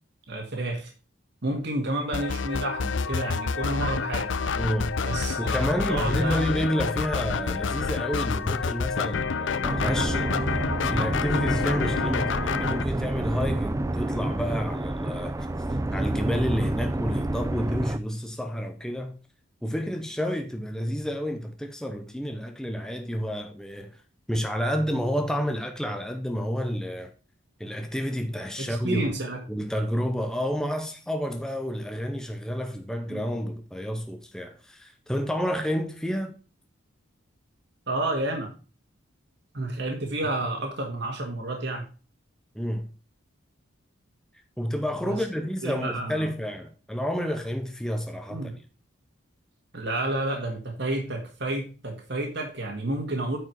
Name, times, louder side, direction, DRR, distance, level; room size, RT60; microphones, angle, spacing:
voice 1, 0.3-0.9 1.4-4.3 5.0-6.7 28.6-29.4 33.1-33.2 37.9-38.5 39.5-41.8 45.0-45.2 45.6-46.3 48.3-48.5 49.7-53.4, right 2 dB, 55° right, 1.8 m, -30 dB
sound 1, 2.1-12.8, left 5 dB, 60° left, 0.5 m, -28 dB
voice 2, 4.6-5.1 5.4-10.3 10.9-15.5 15.9-19.2 19.6-24.0 24.3-27.1 27.6-29.0 29.5-36.4 42.5-42.9 44.6-48.6, equal, 5° left, 0.7 m, -30 dB
sound 2, 9.6-18.0, right 1 dB, 15° right, 0.4 m, -29 dB
9.3 x 4.9 x 4.6 m
head